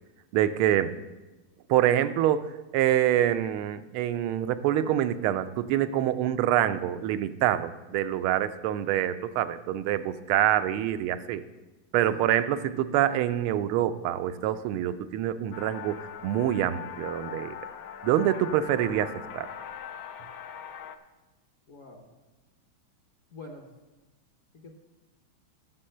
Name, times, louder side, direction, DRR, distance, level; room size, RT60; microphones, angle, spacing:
voice 1, 0.3-0.9 1.7-11.4 11.9-17.5 18.0-19.5, right 11 dB, 85° right, 11 dB, 1.5 m, -26 dB
sound 1, 15.5-21.0, left 8 dB, 75° left, 0.8 m, -41 dB
voice 2, 21.7-22.1 23.3-23.7 24.5-24.8, left 2 dB, 50° left, 2 dB, 1.0 m, -46 dB
9.9 x 6.2 x 7.6 m, 1.1 s
omnidirectional pair, 2.3 m